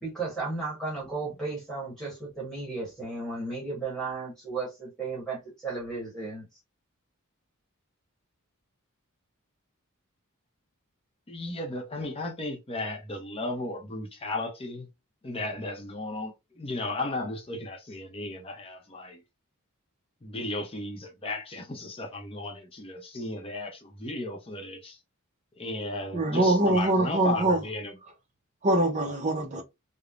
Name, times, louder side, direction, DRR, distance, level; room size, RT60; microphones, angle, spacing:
voice 1, 0.0-6.4, right 3 dB, 5° left, 1.2 m, -34 dB
voice 2, 11.3-14.9 15.2-19.2 20.2-25.0 25.5-27.9, left 2 dB, 25° left, 0.6 m, -35 dB
voice 3, 26.1-27.6 28.6-29.6, right 1 dB, 35° right, 0.5 m, -23 dB
3.1 x 2.0 x 2.4 m
head